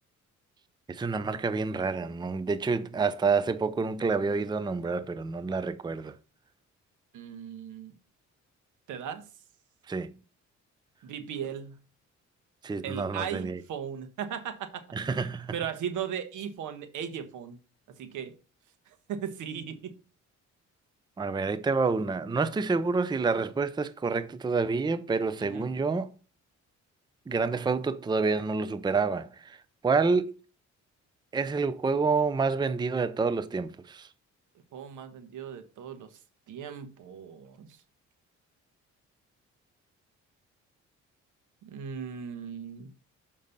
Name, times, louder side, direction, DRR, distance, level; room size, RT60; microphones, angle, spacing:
voice 1, 0.9-6.2 9.9-10.1 12.6-13.6 14.9-15.5 21.2-26.1 27.3-29.6 29.8-30.4 31.3-34.1, right 4 dB, 15° right, 0.5 m, -28 dB
voice 2, 7.1-7.9 8.9-9.2 11.0-11.7 12.8-14.8 15.5-17.6 18.0-18.3 19.1-19.9 25.4-25.6 34.7-36.1 36.5-37.7 41.6-42.9, right 8 dB, 80° right, 1.2 m, -37 dB
6.9 x 5.3 x 4.0 m
cardioid pair, 90°, 30 cm